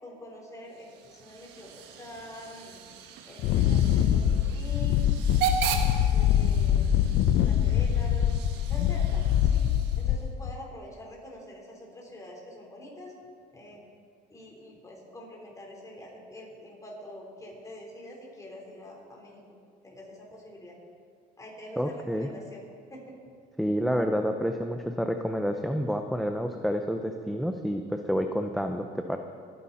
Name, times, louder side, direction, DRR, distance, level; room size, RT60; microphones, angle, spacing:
voice 1, 0.0-2.8 3.3-5.0 5.6-7.1 7.5-8.3 8.7-9.6 10.0-13.1 13.5-13.9 14.3-19.4 19.8-20.8 21.4-23.1, left 1 dB, 20° left, -2 dB, 4.0 m, -45 dB
Hiss / Train / Alarm, 0.7-10.3, right 7 dB, 90° right, 1.3 m, -37 dB
Wind, 3.4-10.6, left 10 dB, 80° left, 0.6 m, -24 dB
voice 2, 21.8-22.3 23.6-29.2, equal, ahead, 5 dB, 0.6 m, -29 dB
22.5 x 9.9 x 4.2 m, 2.2 s
cardioid pair, 110°, 17 cm